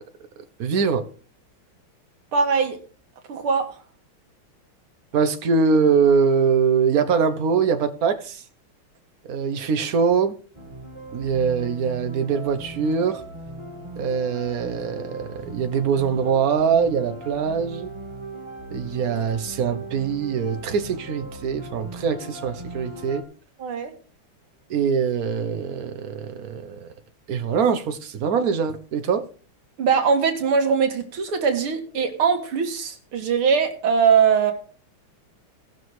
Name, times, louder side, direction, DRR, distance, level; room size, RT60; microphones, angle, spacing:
voice 1, 0.6-1.0 5.1-8.4 9.3-10.4 11.1-13.2 14.0-17.9 18.7-23.2 24.7-26.9 27.3-29.3, right 6 dB, 50° right, 1.4 m, -23 dB
voice 2, 2.3-2.8 3.3-3.7 23.6-23.9 29.8-34.5, right 6 dB, 90° right, 2.5 m, -21 dB
sound 1, 10.5-23.2, right 2 dB, 15° right, 1.9 m, -38 dB
18.0 x 6.2 x 4.8 m
omnidirectional pair, 2.3 m